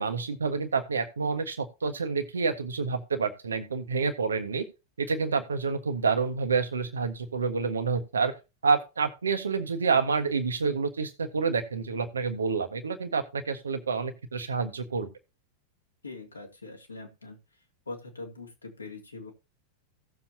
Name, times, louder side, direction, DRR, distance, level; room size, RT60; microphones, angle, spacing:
voice 1, 0.0-4.6 5.0-8.3 8.6-15.1, right 5 dB, 70° right, 1.4 m, -28 dB
voice 2, 16.0-17.4 17.9-19.3, left 3 dB, 80° left, 2.5 m, -42 dB
16.5 x 7.3 x 2.8 m
figure-of-eight pair, 90°, 0 cm